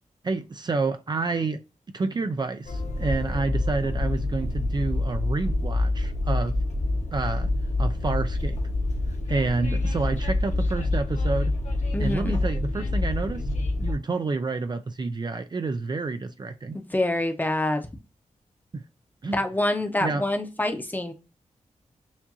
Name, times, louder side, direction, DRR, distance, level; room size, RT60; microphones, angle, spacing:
voice 1, 0.2-1.6 1.9-6.6 7.1-7.5 7.8-8.6 9.3-11.5 12.0-13.5 13.8-16.8 18.7-18.8 19.2-19.4 20.0-20.2, right 3 dB, 35° right, 0.4 m, -29 dB
Train, 2.7-13.9, left 2 dB, 65° left, 1.3 m, -26 dB
voice 2, 11.9-12.4 16.7-17.9 19.3-21.1, left 1 dB, 15° left, 0.7 m, -26 dB
7.1 x 2.5 x 2.7 m
wide cardioid pair, 120°, 13 cm